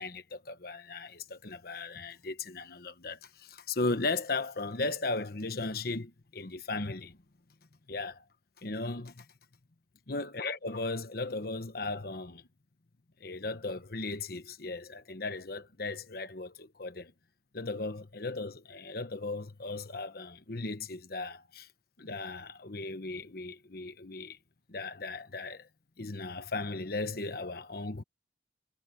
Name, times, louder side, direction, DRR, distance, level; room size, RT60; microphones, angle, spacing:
voice 1, 0.0-7.2 7.9-8.2 8.6-9.2 10.1-12.4 13.2-17.1 17.5-21.7 22.0-24.4 24.7-25.7 26.0-28.0, left 3 dB, 55° left, 1.2 m, -36 dB
head